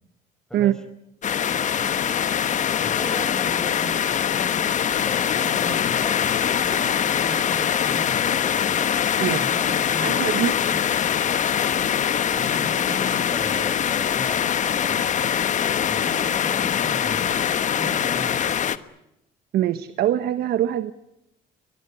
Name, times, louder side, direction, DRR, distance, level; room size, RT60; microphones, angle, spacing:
voice 1, 0.5-0.8 1.7-2.0 2.8-4.6 5.0-8.8 9.2-11.9 12.3-15.2 15.8-17.3 17.8-18.5, left 1 dB, 5° left, 9 dB, 5.0 m, -38 dB
sound 1, 1.2-18.8, left 9 dB, 45° left, 1.2 m, -23 dB
voice 2, 10.0-10.6 19.5-20.9, right 12 dB, 70° right, 13 dB, 1.1 m, -23 dB
23.0 x 22.0 x 9.7 m, 0.84 s
cardioid pair, 110°, 17 cm